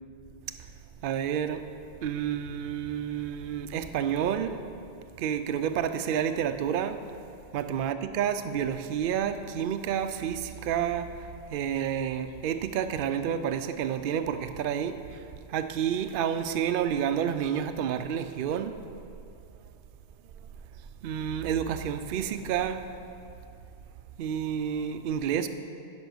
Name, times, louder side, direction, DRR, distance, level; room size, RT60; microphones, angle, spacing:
voice 1, 1.0-1.6 2.0-4.6 5.2-7.0 7.5-15.2 15.5-18.7 21.0-22.9 24.2-25.5, right 8 dB, 60° right, 9 dB, 0.6 m, -29 dB
10.5 x 5.4 x 6.2 m, 2.4 s
omnidirectional pair, 1.2 m